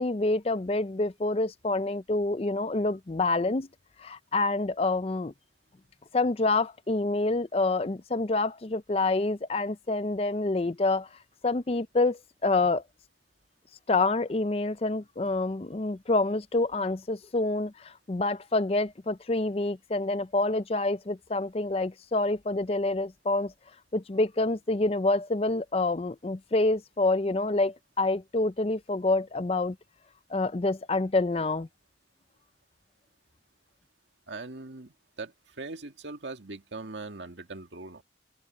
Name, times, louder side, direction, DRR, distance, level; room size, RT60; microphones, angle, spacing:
voice 1, 0.0-3.7 4.0-5.3 6.1-11.1 11.4-12.8 13.9-23.5 23.9-29.8 30.3-31.7, left 2 dB, 35° left, 0.5 m, -27 dB
voice 2, 34.3-38.0, right 3 dB, 85° right, 2.0 m, -41 dB
head